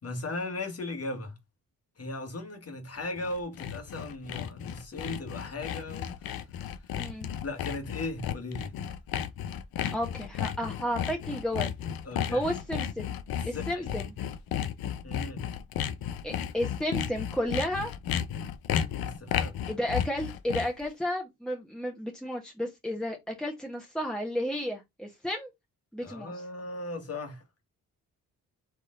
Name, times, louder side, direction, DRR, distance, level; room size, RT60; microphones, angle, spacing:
voice 1, 0.0-1.4 2.0-6.4 6.8-7.1 7.4-8.7 12.0-12.4 13.3-14.1 15.0-15.4 19.0-19.6 26.0-27.4, left 2 dB, 40° left, 1.7 m, -37 dB
Sawing, 3.0-20.9, left 9 dB, 75° left, 0.7 m, -33 dB
voice 2, 7.0-7.3 9.9-11.7 12.3-13.1 13.4-14.1 16.2-17.9 19.7-25.5 25.9-26.3, equal, ahead, 1.4 m, -32 dB
4.5 x 3.0 x 3.7 m
supercardioid pair, 55°, 36 cm